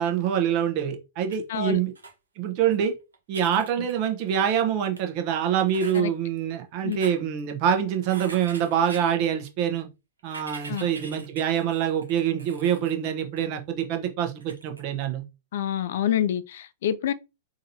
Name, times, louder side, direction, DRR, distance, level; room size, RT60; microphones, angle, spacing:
voice 1, 0.0-1.9 2.4-2.9 3.3-9.9 10.2-15.2, right 9 dB, 45° right, 0.8 m, -25 dB
sound 1, 1.2-1.4 2.0-2.1 2.7-2.8 3.1-4.4 5.0-5.1 5.7-6.0 6.8-7.1 8.0-9.0 10.2-12.9 13.4-13.5 14.4-14.8, right 3 dB, 85° right, 0.9 m, -43 dB
voice 2, 1.5-1.8 5.9-6.1 6.8-7.0 10.7-10.9 15.5-17.1, left 10 dB, 65° left, 0.3 m, -27 dB
3.9 x 2.6 x 2.7 m
hypercardioid pair, 110°, 0 cm